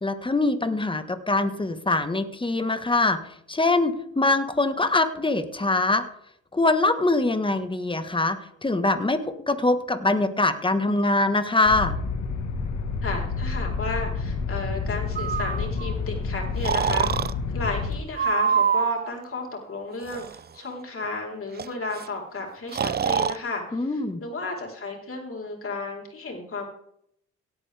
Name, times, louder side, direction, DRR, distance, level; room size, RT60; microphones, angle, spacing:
voice 1, 0.0-3.2 3.5-6.0 6.5-12.0 23.7-24.2, left 2 dB, 15° left, 9 dB, 1.4 m, -23 dB
sound 1, 11.7-18.0, left 4 dB, 70° left, 1.6 m, -29 dB
voice 2, 13.0-17.2 17.5-26.7, left 3 dB, 45° left, 0 dB, 4.0 m, -33 dB
Breathing, 15.2-15.9 16.6-17.3 18.2-19.1 20.0-20.4 21.6-21.7 21.9-22.1 22.7-23.4, right 7 dB, 35° right, 0.5 m, -25 dB
17.0 x 8.6 x 3.5 m, 0.71 s
cardioid pair, 70°, 30 cm